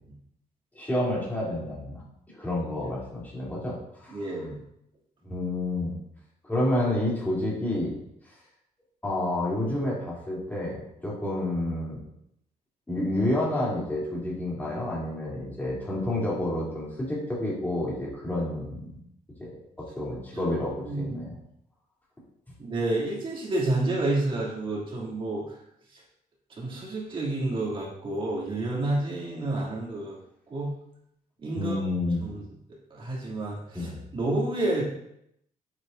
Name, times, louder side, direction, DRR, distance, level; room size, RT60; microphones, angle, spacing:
voice 1, 0.7-2.0 2.3-4.4 5.2-6.0 6.4-7.9 9.0-12.0 12.9-19.0 19.4-19.5 19.8-21.4 31.5-32.3 33.7-34.0, left 1 dB, 10° left, -6 dB, 3.3 m, -29 dB
voice 2, 4.1-4.5 20.4-20.5 20.9-21.2 22.6-25.4 26.6-30.2 30.5-30.7 31.4-31.8 32.2-32.4 32.9-34.8, right 2 dB, 40° right, -5 dB, 2.9 m, -29 dB
9.2 x 7.2 x 2.7 m, 0.76 s
cardioid pair, 140°, 14 cm